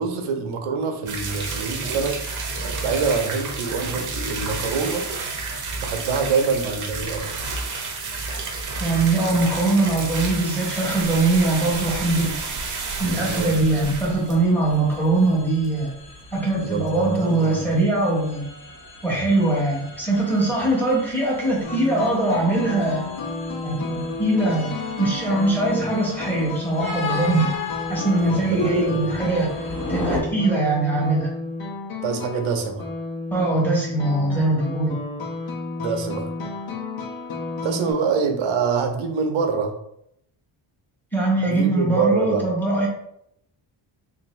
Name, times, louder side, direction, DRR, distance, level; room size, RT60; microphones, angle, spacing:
voice 1, 0.0-2.2 2.8-5.1 5.8-7.5 13.0-13.5 16.6-17.7 28.2-29.1 32.0-32.9 35.8-36.3 37.6-39.7 41.4-42.4, right 5 dB, 90° right, 5 dB, 0.7 m, -25 dB
sound 1, 1.1-15.4 15.6-15.7 16.0-16.1 16.5-16.6, right 4 dB, 40° right, 0.7 m, -30 dB
voice 2, 8.8-12.4 13.0-15.9 16.3-18.4 19.0-23.1 23.6-27.5 27.9-29.5 29.9-31.3 33.3-35.0 41.1-42.9, right 2 dB, 5° left, -4 dB, 1.1 m, -22 dB
sound 2, 10.3-30.2, left 3 dB, 40° left, 0.9 m, -37 dB
sound 3, 21.6-37.9, left 3 dB, 65° left, 1.0 m, -31 dB
3.8 x 2.7 x 3.1 m, 0.75 s
wide cardioid pair, 155°, 48 cm